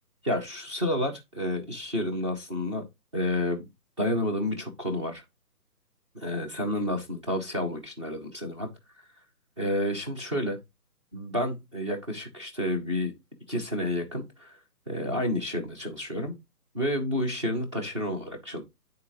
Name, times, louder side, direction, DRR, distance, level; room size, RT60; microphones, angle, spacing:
voice 1, 0.2-2.8 3.1-3.6 4.0-5.2 6.1-8.7 9.6-10.6 11.1-13.1 13.5-14.5 14.9-16.4 16.7-18.6, left 1 dB, 20° right, 0.9 m, -30 dB
10.5 x 3.8 x 2.7 m
figure-of-eight pair, 145°, 48 cm